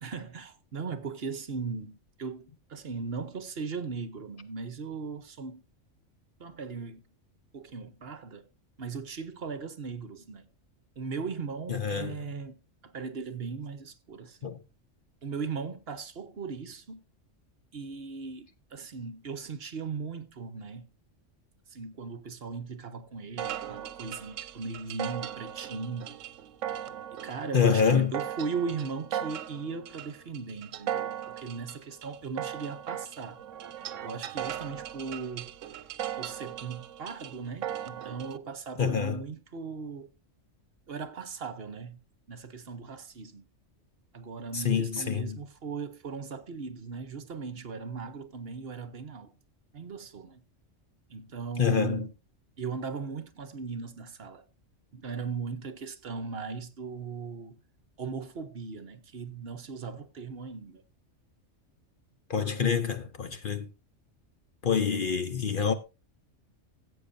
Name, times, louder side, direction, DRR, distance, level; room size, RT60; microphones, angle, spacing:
voice 1, 0.0-5.6 6.4-7.1 7.5-8.5 8.8-10.5 11.0-12.6 12.8-14.6 15.2-17.0 17.7-20.9 21.7-26.2 27.1-33.4 34.0-35.5 36.2-40.1 40.9-42.0 42.3-43.5 44.1-49.4 49.7-50.4 51.1-52.1 52.6-54.4 54.9-57.6 58.0-60.8, right 5 dB, 55° right, 1.0 m, -38 dB
voice 2, 11.7-12.2 14.4-14.6 27.5-28.1 38.8-39.2 44.5-45.4 51.6-52.1 62.3-63.7 64.6-65.7, left 7 dB, 50° left, 0.8 m, -26 dB
sound 1, 23.4-38.4, right 10 dB, 80° right, 1.0 m, -38 dB
16.5 x 8.0 x 2.6 m
omnidirectional pair, 1.3 m